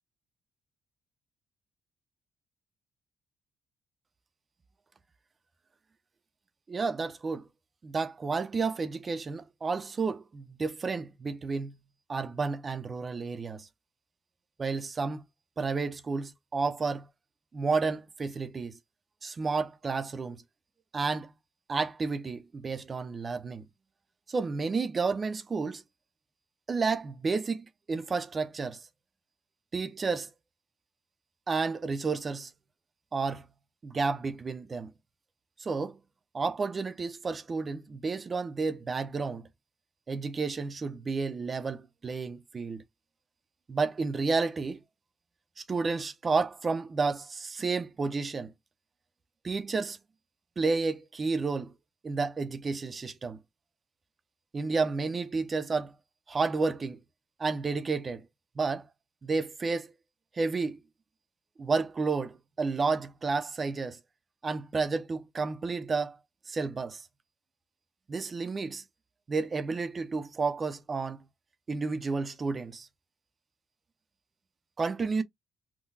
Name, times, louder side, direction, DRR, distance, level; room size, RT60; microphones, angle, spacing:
voice 1, 6.7-7.5 7.8-11.8 12.1-13.7 14.6-15.2 15.6-17.1 17.5-18.8 19.2-20.4 20.9-21.3 21.7-23.6 24.3-25.8 26.7-28.8 29.7-30.3 31.5-32.5 33.1-33.5 33.8-34.9 35.6-36.0 36.3-39.5 40.1-42.8 43.7-44.8 45.6-48.5 49.4-50.0 50.6-51.7 52.0-53.4 54.5-55.9 56.3-57.0 57.4-58.2 58.6-58.9 59.2-59.9 60.3-60.8 61.6-64.0 64.4-66.2 66.5-67.1 68.1-68.8 69.3-71.2 71.7-72.9 74.8-75.2, right 4 dB, 35° right, 0.6 m, -31 dB
3.7 x 2.2 x 2.6 m
cardioid pair, 90°, 0 cm